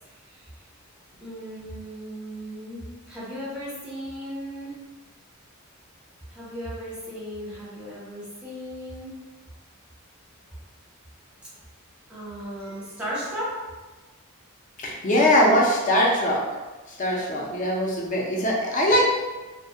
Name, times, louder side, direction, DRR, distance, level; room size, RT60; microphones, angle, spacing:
voice 1, 0.0-0.5 1.2-4.7 6.3-9.1 12.1-13.5, equal, 5° right, -9 dB, 0.7 m, -36 dB
voice 2, 14.8-16.4 16.9-19.0, equal, 35° left, -2 dB, 0.4 m, -21 dB
2.3 x 2.1 x 2.6 m, 1.2 s
head